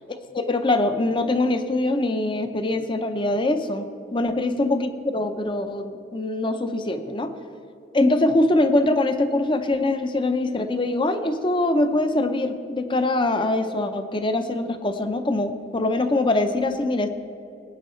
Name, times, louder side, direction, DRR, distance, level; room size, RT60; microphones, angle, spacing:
voice 1, 0.1-7.3 7.9-17.1, left 2 dB, 25° left, 8 dB, 0.6 m, -23 dB
19.5 x 9.3 x 3.2 m, 2.5 s
head